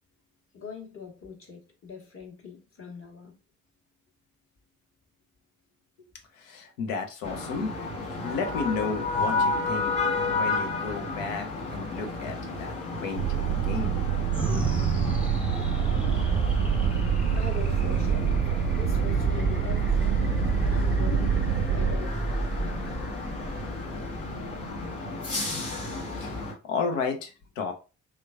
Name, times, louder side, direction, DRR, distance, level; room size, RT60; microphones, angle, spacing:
voice 1, 0.5-3.3 17.4-18.3 18.6-20.1 20.7-22.2 22.6-23.2, left 5 dB, 35° left, 1.4 m, -42 dB
voice 2, 6.4-7.7 8.2-14.0 26.1-27.7, left 4 dB, 75° left, 0.7 m, -33 dB
sound 1, 7.2-26.5, left 3 dB, 60° left, 1.4 m, -33 dB
sound 2, 13.2-22.0, right 11 dB, 65° right, 0.5 m, -27 dB
sound 3, 14.3-25.0, right 3 dB, 5° right, 0.7 m, -29 dB
3.3 x 3.0 x 2.3 m
figure-of-eight pair, 40°, 39 cm